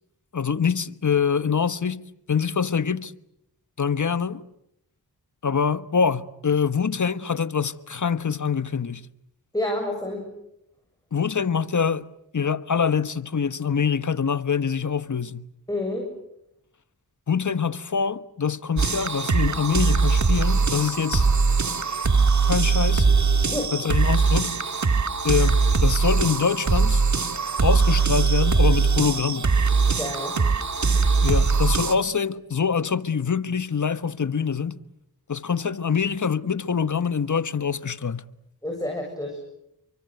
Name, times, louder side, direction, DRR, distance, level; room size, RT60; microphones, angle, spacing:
voice 1, 0.3-2.0 2.3-3.1 3.8-4.4 5.4-9.0 11.1-12.1 12.3-15.4 17.3-21.3 22.5-23.1 23.7-24.5 25.2-27.0 27.6-29.5 31.2-34.8 35.3-38.3, left 6 dB, 50° left, 1.3 m, -24 dB
voice 2, 9.5-10.2 15.7-16.1 23.5-23.7 29.9-30.4 38.6-39.4, left 1 dB, 10° left, 7.5 m, -29 dB
sound 1, 18.8-32.0, right 4 dB, 50° right, 2.0 m, -21 dB
29.5 x 24.0 x 8.0 m
cardioid pair, 45°, 38 cm